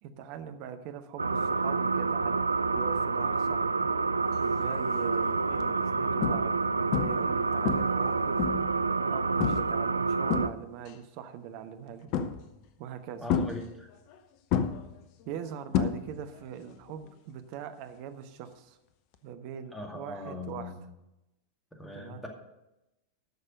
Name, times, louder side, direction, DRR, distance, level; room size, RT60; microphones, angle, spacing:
voice 1, 0.0-3.9 4.4-8.4 9.0-12.1 12.8-13.3 15.2-18.8 19.2-20.7 21.9-22.2, right 8 dB, 45° right, 8 dB, 1.0 m, -42 dB
sound 1, 1.2-10.5, right 4 dB, 80° right, 0.3 m, -28 dB
sound 2, 4.6-4.9 5.5-5.6 6.2-6.6 6.9-7.3 7.7-8.8 9.4-9.8 10.1-10.9 12.1-12.6 13.3-14.2 14.5-16.4 16.7-17.1 19.1-19.2, left 8 dB, 45° left, 0.8 m, -30 dB
voice 2, 13.2-13.9 19.7-20.7 21.8-22.3, left 2 dB, 5° left, 2 dB, 2.2 m, -40 dB
12.0 x 6.5 x 6.4 m, 0.93 s
figure-of-eight pair, 90°, 0 cm